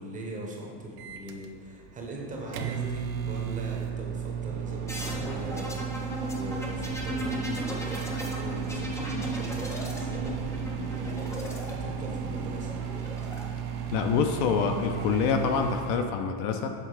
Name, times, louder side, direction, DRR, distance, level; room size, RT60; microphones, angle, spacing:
voice 1, 0.0-10.4 10.8-11.5 11.8-12.7, right 1 dB, 20° right, -1 dB, 0.7 m, -41 dB
Microwave oven, 1.0-16.1, right 8 dB, 90° right, 0.7 m, -34 dB
sound 1, 4.9-13.4 14.5-15.1, left 1 dB, 10° left, 0.3 m, -36 dB
voice 2, 13.9-16.7, left 6 dB, 55° left, 5 dB, 0.6 m, -26 dB
6.8 x 3.6 x 4.7 m, 2.4 s
cardioid pair, 155°, 43 cm